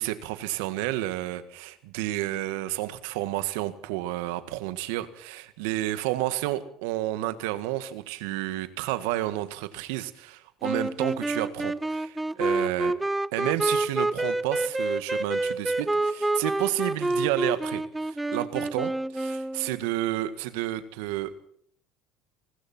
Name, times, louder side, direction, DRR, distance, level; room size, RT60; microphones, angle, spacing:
voice 1, 0.0-13.0 13.3-21.4, right 15 dB, 80° right, 13 dB, 1.8 m, -31 dB
sound 1, 10.6-19.8, right 2 dB, 10° right, 0.9 m, -28 dB
29.5 x 20.5 x 4.4 m, 0.63 s
supercardioid pair, 85°, 0 cm